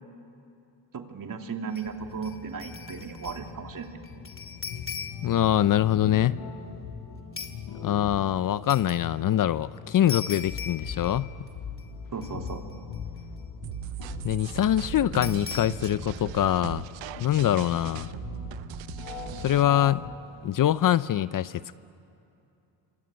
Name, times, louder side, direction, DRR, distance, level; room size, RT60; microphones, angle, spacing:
voice 1, 0.9-4.0 12.1-12.6, right 5 dB, 45° right, 4 dB, 2.8 m, -36 dB
sound 1, 1.7-1.9 2.2-3.5 3.8-5.4 7.4-7.6 8.7-9.0 10.1-11.5 11.8-11.9 12.2-13.0 15.2-15.9, left 6 dB, 30° left, 2.3 m, -39 dB
sound 2, 1.9-20.1, left 5 dB, 80° left, 4.9 m, -40 dB
voice 2, 5.2-6.4 7.8-11.3 14.2-16.9 17.2-18.1 19.4-20.0 20.4-21.7, left 11 dB, 45° left, 16 dB, 0.6 m, -24 dB
sound 3, 13.6-19.6, right 13 dB, 75° right, 0.9 m, -39 dB
28.0 x 24.0 x 8.9 m, 2.7 s
cardioid pair, 85°, 45 cm